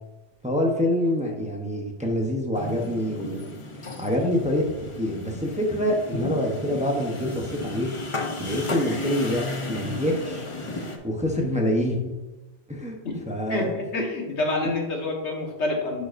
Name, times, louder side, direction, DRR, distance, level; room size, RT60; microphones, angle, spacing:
voice 1, 0.4-3.5 3.8-7.9 8.4-10.5 11.0-12.1 12.7-13.0 13.3-13.7, equal, 5° right, 0 dB, 0.7 m, -26 dB
sound 1, 2.5-11.0, left 2 dB, 35° left, 0.7 m, -34 dB
voice 2, 13.5-16.0, left 2 dB, 90° left, 0 dB, 1.6 m, -27 dB
10.5 x 5.0 x 2.6 m, 1.1 s
omnidirectional pair, 1.1 m